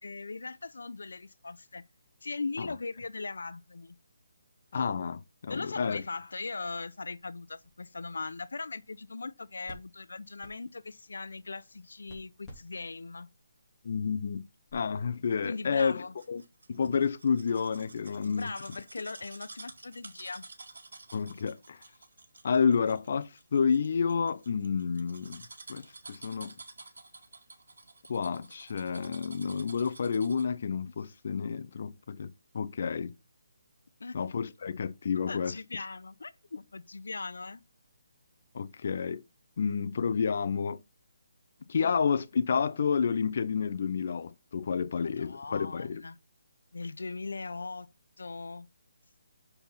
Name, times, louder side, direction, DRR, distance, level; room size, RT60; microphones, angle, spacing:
voice 1, 0.0-1.8 2.2-4.0 5.5-13.3 15.4-16.1 18.2-20.4 34.0-34.2 35.3-37.6 45.0-46.2 46.7-47.9 48.2-48.7, left 3 dB, 85° left, 0.7 m, -39 dB
voice 2, 4.7-6.0 13.8-14.4 14.7-16.0 16.3-16.4 16.7-18.5 21.1-21.8 22.4-25.4 25.7-25.8 26.1-26.5 28.1-33.1 34.1-35.5 38.5-39.2 39.6-40.8 41.7-46.0, left 6 dB, 45° left, 0.6 m, -30 dB
sound 1, 9.8-14.7, equal, 10° left, 3.0 m, -57 dB
sound 2, 15.4-30.6 31.0-31.1, right 3 dB, 90° right, 1.8 m, -51 dB
6.8 x 5.6 x 5.6 m
hypercardioid pair, 170°, 0 cm